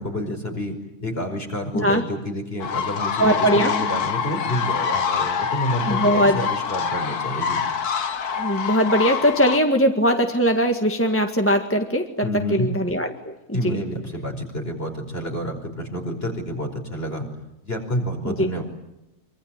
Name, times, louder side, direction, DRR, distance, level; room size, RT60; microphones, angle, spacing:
voice 1, 0.0-7.6 12.2-12.7 13.5-17.3 17.6-18.6, equal, 40° left, 3 dB, 5.5 m, -29 dB
sound 1, 2.6-9.6, left 6 dB, 90° left, 1.9 m, -25 dB
voice 2, 3.2-3.7 5.9-6.5 8.4-13.8 18.2-18.5, equal, 10° left, 4 dB, 1.7 m, -20 dB
25.5 x 25.0 x 9.1 m, 0.93 s
omnidirectional pair, 1.6 m